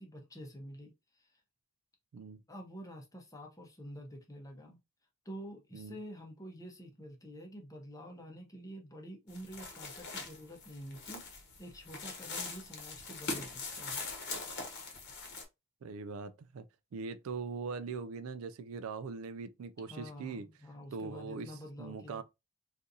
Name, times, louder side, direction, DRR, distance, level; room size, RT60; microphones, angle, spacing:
voice 1, 0.0-1.4 2.5-4.8 5.2-14.1 19.9-22.2, equal, 15° left, 0.7 m, -48 dB
sound 1, 9.3-15.4, left 3 dB, 50° left, 0.9 m, -42 dB
voice 2, 15.8-16.6 16.9-20.5 20.9-21.5 21.8-22.2, right 5 dB, 70° right, 0.4 m, -41 dB
3.9 x 2.5 x 2.6 m
head